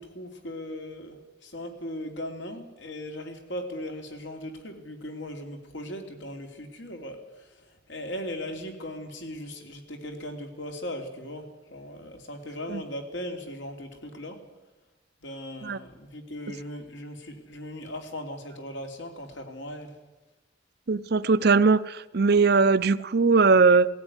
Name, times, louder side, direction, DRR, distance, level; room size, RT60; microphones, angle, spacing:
voice 1, 0.0-14.5 15.2-20.0, left 1 dB, 75° left, 3.2 m, -38 dB
voice 2, 20.9-21.8 22.1-23.9, right 4 dB, 55° right, 0.7 m, -19 dB
17.5 x 16.0 x 9.8 m
head